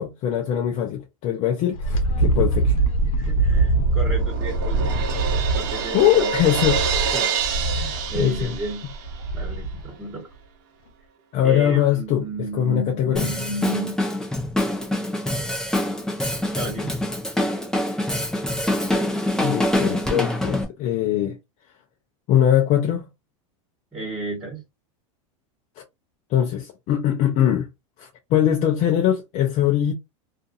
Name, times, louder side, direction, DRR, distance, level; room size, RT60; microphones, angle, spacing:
voice 1, 0.0-2.8 5.9-6.8 7.3-7.4 8.1-8.5 11.3-12.3 12.5-13.3 19.4-21.4 22.3-23.1 26.3-27.7 28.0-29.9, left 10 dB, 45° left, 0.6 m, -21 dB
Wind, 1.7-9.9, right 2 dB, 90° left, 0.8 m, -23 dB
voice 2, 3.1-5.1 5.6-6.3 7.1-7.3 7.8-8.9 9.3-10.3 11.4-14.0 16.5-16.9 23.9-24.6, right 1 dB, 15° right, 1.4 m, -32 dB
Crash cymbal, 3.5-9.3, right 6 dB, 55° right, 0.7 m, -28 dB
Drum kit, 13.2-20.7, left 1 dB, 5° left, 0.6 m, -25 dB
2.5 x 2.5 x 2.5 m
supercardioid pair, 120°, 17 cm